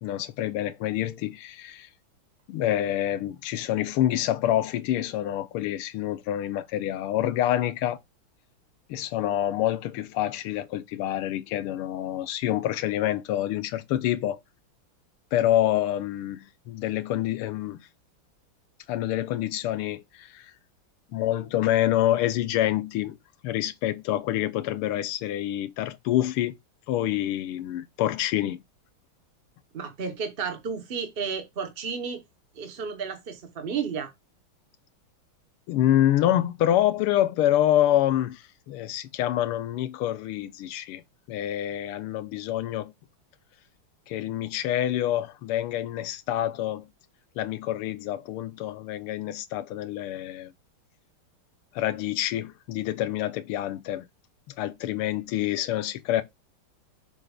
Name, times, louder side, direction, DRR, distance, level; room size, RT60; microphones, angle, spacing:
voice 1, 0.0-1.9 2.5-8.0 8.9-14.4 15.3-17.8 18.9-20.5 21.1-23.2 23.4-26.6 26.9-28.6 35.7-41.0 41.3-42.9 44.1-46.9 47.4-50.5 51.7-54.0 54.6-56.2, left 12 dB, 85° left, 1.6 m, -27 dB
voice 2, 29.7-32.2 32.5-34.1, right 6 dB, 50° right, 0.7 m, -32 dB
7.2 x 6.5 x 2.3 m
omnidirectional pair, 2.4 m